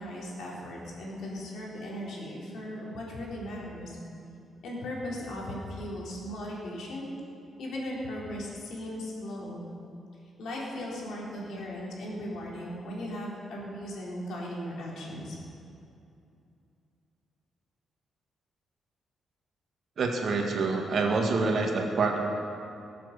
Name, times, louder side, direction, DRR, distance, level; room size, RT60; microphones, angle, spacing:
voice 1, 0.0-4.0 4.6-7.1 7.6-9.7 10.4-15.4, left 1 dB, 70° left, -4 dB, 3.6 m, -37 dB
voice 2, 20.0-22.2, right 3 dB, 50° right, 1 dB, 1.7 m, -26 dB
19.0 x 7.6 x 6.6 m, 2.6 s
cardioid pair, 160°, 0 cm